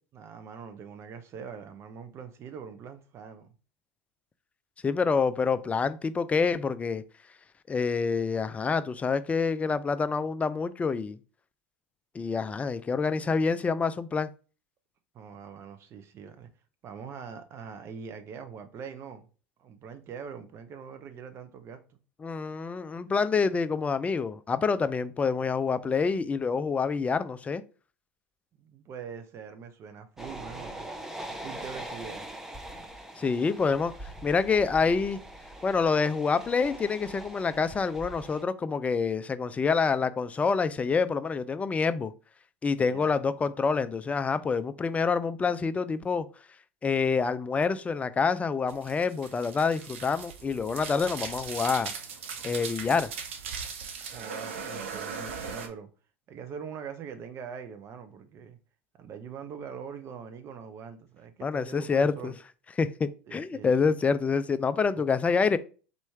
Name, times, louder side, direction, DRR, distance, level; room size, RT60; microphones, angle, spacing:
voice 1, 0.1-3.5 15.1-16.5 16.8-19.3 19.6-22.0 28.5-30.9 31.3-32.3 42.9-43.1 54.1-55.9 56.3-58.6 59.0-62.4 63.3-63.9 65.0-65.1, right 6 dB, 40° right, 0.9 m, -43 dB
voice 2, 4.8-7.0 7.7-11.2 12.1-14.3 22.2-27.6 33.2-35.2 35.6-42.1 42.6-46.3 46.8-51.9 52.4-53.1 61.4-62.3 62.8-65.6, left 5 dB, 20° left, 0.4 m, -27 dB
sound 1, 30.2-38.4, right 1 dB, 5° right, 0.7 m, -42 dB
sound 2, 48.7-55.7, right 6 dB, 75° right, 0.8 m, -39 dB
4.2 x 3.1 x 3.4 m
hypercardioid pair, 85°, 7 cm